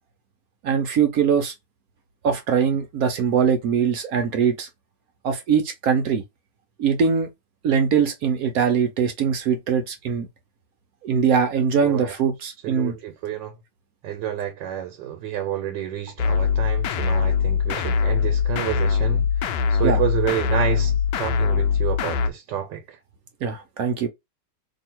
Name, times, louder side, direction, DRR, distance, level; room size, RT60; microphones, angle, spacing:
voice 1, 0.6-1.5 2.2-4.7 5.2-6.2 6.8-7.3 7.6-10.3 11.0-12.9 19.8-20.0 23.4-24.1, right 7 dB, 65° right, 1.0 m, -22 dB
voice 2, 11.8-12.1 12.6-13.5 14.0-19.3 19.7-23.0, right 10 dB, 85° right, 1.4 m, -29 dB
sound 1, 16.2-22.3, left 6 dB, 80° left, 1.2 m, -22 dB
2.8 x 2.7 x 4.4 m
omnidirectional pair, 1.9 m